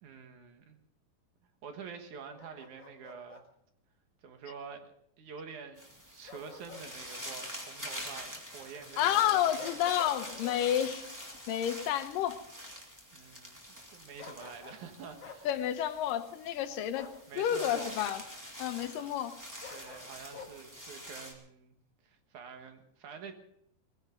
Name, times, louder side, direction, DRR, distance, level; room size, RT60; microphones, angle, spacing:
voice 1, 0.0-0.8 1.6-3.4 4.2-4.9 5.2-9.8 13.1-13.6 13.9-15.5 17.3-18.0 19.0-19.1 19.7-21.8 22.0-23.3, right 6 dB, 65° right, 6 dB, 2.8 m, -47 dB
Bark, 2.4-3.4 6.3-6.9 7.2-7.4 9.6-10.6 14.2-14.8 15.2-15.4 16.9-17.2 19.6-20.5, left 5 dB, 40° left, 1.9 m, -48 dB
sound 1, 5.8-21.3, equal, 5° right, 2.3 m, -46 dB
voice 2, 9.0-11.1 11.5-12.4 15.4-17.1 17.4-18.2 18.6-19.3, left 11 dB, 85° left, 9 dB, 2.6 m, -30 dB
20.5 x 15.5 x 3.8 m, 0.71 s
omnidirectional pair, 3.8 m